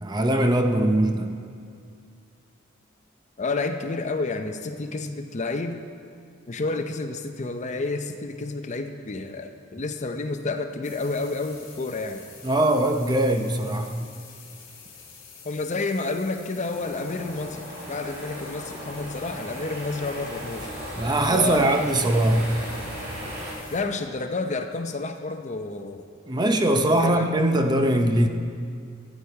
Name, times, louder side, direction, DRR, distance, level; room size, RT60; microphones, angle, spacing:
voice 1, 0.0-1.4 12.4-14.1 21.0-22.6 26.3-28.3, right 1 dB, 20° right, 5 dB, 0.6 m, -21 dB
voice 2, 3.4-5.8 6.5-12.2 15.4-20.7 21.3-21.7 23.7-26.0 26.8-27.3, left 3 dB, 35° left, 7 dB, 0.6 m, -30 dB
sound 1, 10.8-23.8, left 6 dB, 70° left, 2.4 m, -47 dB
sound 2, 16.6-23.5, equal, 55° right, 2.6 m, -37 dB
13.5 x 8.6 x 4.7 m, 2.3 s
head